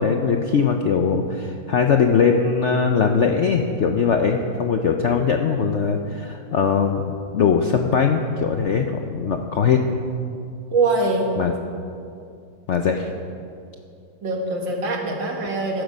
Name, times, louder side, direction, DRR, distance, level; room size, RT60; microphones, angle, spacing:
voice 1, 0.0-9.8 11.4-11.5 12.7-13.1, left 6 dB, 70° left, 4 dB, 0.6 m, -20 dB
voice 2, 10.7-11.3 14.2-15.8, right 3 dB, 90° right, 1 dB, 2.4 m, -23 dB
14.0 x 11.5 x 5.2 m, 2.5 s
omnidirectional pair, 2.0 m